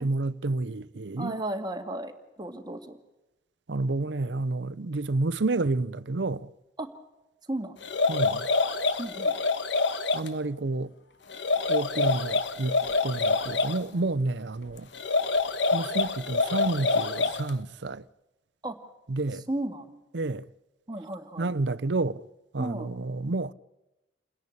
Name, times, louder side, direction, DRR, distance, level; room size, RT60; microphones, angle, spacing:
voice 1, 0.0-1.4 3.7-6.5 8.1-8.5 10.1-10.9 11.7-12.8 13.0-14.9 15.7-18.0 19.1-19.4 20.1-20.5 21.4-22.2 22.5-23.5, right 2 dB, 75° right, 0.7 m, -29 dB
voice 2, 1.2-2.1 2.4-3.0 6.8-7.0 7.5-7.8 9.0-9.3 18.6-18.8 19.5-20.0 20.9-21.5 22.6-22.9, right 1 dB, 25° right, 1.9 m, -34 dB
sound 1, 7.8-10.3 11.3-13.8 14.9-17.5, left 3 dB, 80° left, 1.3 m, -26 dB
29.0 x 10.5 x 8.6 m
head